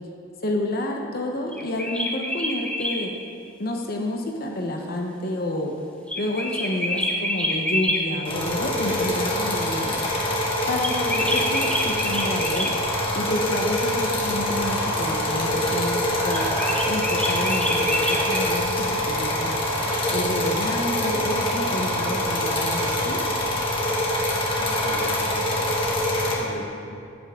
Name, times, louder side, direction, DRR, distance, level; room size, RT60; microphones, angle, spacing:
voice 1, 0.4-3.1 3.6-5.7 6.2-9.9 10.7-12.7 13.1-16.5 16.9-19.6 20.1-23.2, left 1 dB, 50° left, 1 dB, 1.0 m, -29 dB
sound 1, 1.5-3.0 6.1-8.0 10.8-12.7 16.3-18.5, left 1 dB, 5° left, 1.2 m, -27 dB
sound 2, 8.2-26.3, left 1 dB, 25° left, 1.8 m, -25 dB
voice 2, 24.8-27.0, left 1 dB, 75° left, -1 dB, 1.8 m, -40 dB
15.5 x 8.8 x 3.7 m, 2.4 s
head